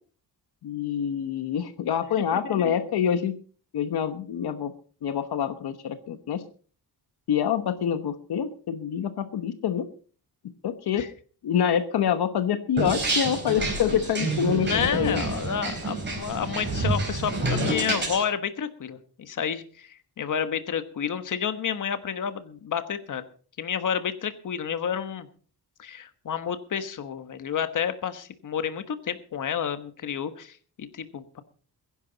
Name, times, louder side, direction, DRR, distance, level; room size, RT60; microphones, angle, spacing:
voice 1, 0.6-3.4 3.7-4.7 5.0-6.4 7.3-9.9 10.6-11.1 11.4-15.2, left 8 dB, 80° left, 10 dB, 1.1 m, -26 dB
sound 1, 12.8-18.2, right 2 dB, 30° right, 4.6 m, -28 dB
voice 2, 14.6-23.2 23.6-25.3 25.8-31.4, left 8 dB, 55° left, 11 dB, 1.3 m, -30 dB
21.5 x 11.0 x 4.0 m, 0.42 s
wide cardioid pair, 165°, 38 cm